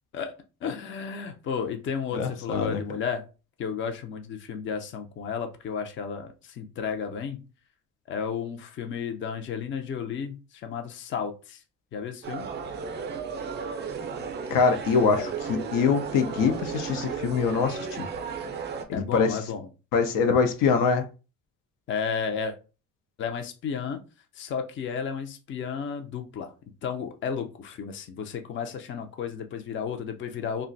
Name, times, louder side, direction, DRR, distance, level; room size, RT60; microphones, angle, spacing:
voice 1, 0.6-3.2 3.6-7.4 8.1-11.6 11.9-12.5 15.2-15.3 18.9-19.7 21.9-22.6 23.2-24.0 24.4-26.5 26.8-30.7, left 6 dB, 35° left, 0.5 m, -33 dB
voice 2, 2.1-2.8 14.5-18.1 18.9-19.4 19.9-21.1, left 5 dB, 80° left, 0.6 m, -24 dB
sound 1, 12.2-18.8, right 6 dB, 35° right, 0.5 m, -34 dB
2.4 x 2.2 x 3.8 m
cardioid pair, 130°, 32 cm